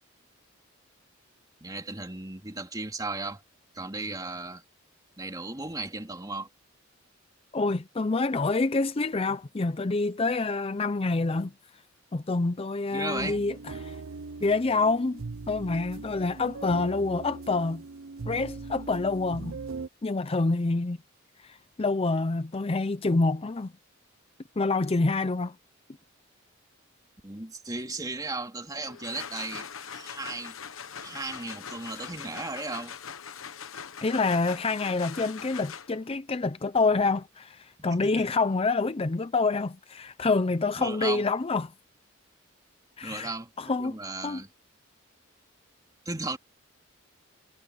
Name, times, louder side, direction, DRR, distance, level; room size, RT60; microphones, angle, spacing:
voice 1, 1.6-3.4 3.7-4.6 5.2-6.5 12.9-13.4 27.2-30.5 31.0-32.9 37.8-38.3 40.8-41.2 43.0-44.5 46.0-46.4, right 2 dB, 20° right, 2.9 m, -36 dB
voice 2, 7.5-11.5 12.1-14.0 14.4-17.8 18.3-19.6 20.0-21.0 21.4-23.7 24.6-25.6 34.0-41.7 43.0-43.9 44.2-44.4, left 3 dB, 25° left, 0.5 m, -27 dB
sound 1, 13.2-19.9, right 4 dB, 80° right, 0.6 m, -40 dB
sound 2, 28.8-36.2, left 7 dB, 80° left, 1.1 m, -42 dB
head